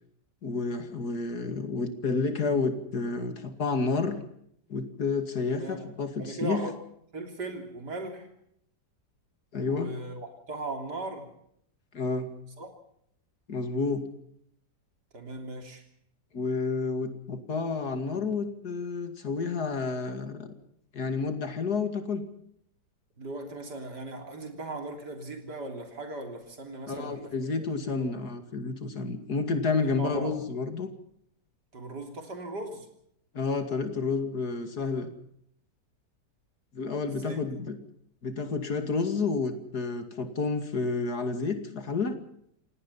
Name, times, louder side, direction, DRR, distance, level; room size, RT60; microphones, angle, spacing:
voice 1, 0.4-4.2 4.7-6.6 9.5-9.9 11.9-12.3 13.5-14.1 16.3-20.5 20.9-22.2 26.9-30.9 33.3-35.1 36.7-37.8 38.2-42.2, left 4 dB, 65° left, 8 dB, 2.9 m, -30 dB
voice 2, 5.5-5.9 6.2-6.8 7.1-8.3 9.7-11.3 12.6-12.7 15.1-15.8 23.2-27.7 28.0-28.2 29.8-30.4 31.7-32.9 37.1-37.4, right 2 dB, 80° right, 5 dB, 4.1 m, -38 dB
27.5 x 18.0 x 5.7 m, 0.70 s
omnidirectional pair, 1.8 m